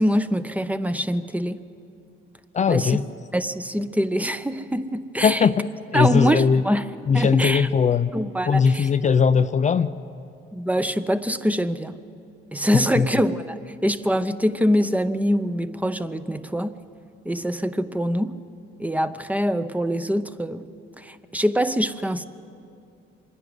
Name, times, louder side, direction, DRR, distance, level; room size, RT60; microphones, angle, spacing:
voice 1, 0.0-1.6 2.7-3.0 3.3-5.5 5.9-6.9 7.1-7.7 8.1-8.9 10.5-12.0 12.5-16.7 17.2-18.3 18.8-20.7 21.0-22.2, equal, 5° right, 11 dB, 0.7 m, -24 dB
voice 2, 2.5-3.0 5.2-6.6 7.1-8.1 8.5-9.9 13.0-13.1, left 6 dB, 35° left, 11 dB, 0.5 m, -19 dB
25.5 x 11.0 x 9.5 m, 2.5 s
cardioid pair, 90°, 20 cm